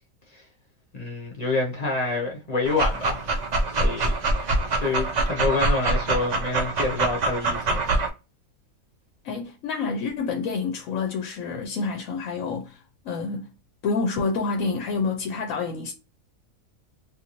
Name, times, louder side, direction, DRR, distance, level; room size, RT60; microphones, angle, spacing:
voice 1, 0.9-3.3 3.8-4.1 4.4-7.8, left 3 dB, 35° left, 0.7 m, -27 dB
Dog, 2.6-8.1, right 2 dB, 80° right, 0.3 m, -25 dB
voice 2, 9.2-12.8 13.0-13.5 13.8-15.9, left 4 dB, 70° left, 0.9 m, -28 dB
2.6 x 2.6 x 2.9 m
omnidirectional pair, 1.5 m